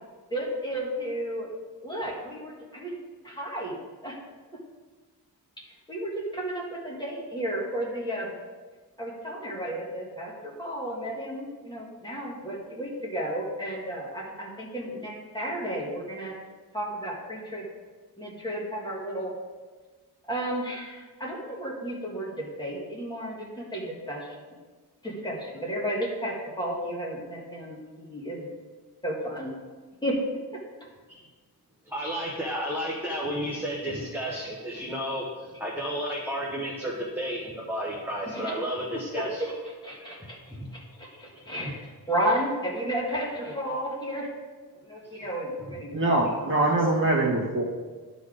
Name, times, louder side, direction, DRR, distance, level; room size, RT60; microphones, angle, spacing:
voice 1, 0.3-1.5 1.8-2.9 3.2-3.8 4.0-4.2 5.6-8.3 9.0-16.3 16.7-17.7 18.2-19.3 20.2-24.4 25.0-28.5 29.0-29.5 30.0-30.2 30.5-30.6 38.3-38.5 38.9-40.4 40.7-44.3 44.8-46.0, right 1 dB, 10° left, -4 dB, 1.6 m, -33 dB
voice 2, 31.9-39.4 40.5-40.7 45.1-45.3, equal, 5° right, -4 dB, 0.8 m, -32 dB
voice 3, 45.9-47.6, right 2 dB, 30° right, -3 dB, 1.7 m, -23 dB
11.5 x 4.1 x 4.9 m, 1.4 s
wide cardioid pair, 175°, 39 cm